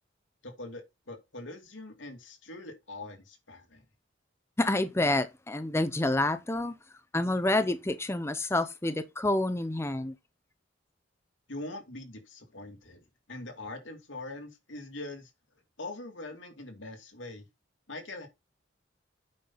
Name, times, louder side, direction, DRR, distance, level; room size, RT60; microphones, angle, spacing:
voice 1, 0.4-3.8 11.5-15.3 15.8-17.4 17.9-18.3, left 2 dB, 80° left, 2.6 m, -43 dB
voice 2, 4.6-6.7 7.1-10.1, left 2 dB, 15° left, 0.6 m, -28 dB
8.6 x 5.9 x 3.9 m
head